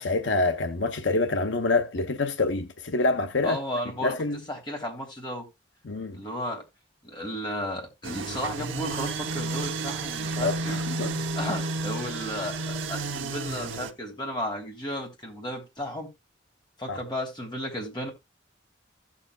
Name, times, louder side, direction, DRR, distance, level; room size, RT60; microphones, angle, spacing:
voice 1, 0.0-3.6 4.0-4.4 5.8-6.2 10.4-11.2 16.9-17.0, left 3 dB, 75° left, 0.8 m, -26 dB
voice 2, 3.4-4.2 4.5-5.5 6.1-6.6 7.0-10.8 11.3-16.1 16.8-18.1, equal, 25° left, 2.9 m, -34 dB
sound 1, 8.0-13.9, right 3 dB, 85° right, 0.9 m, -31 dB
15.5 x 7.3 x 2.3 m
head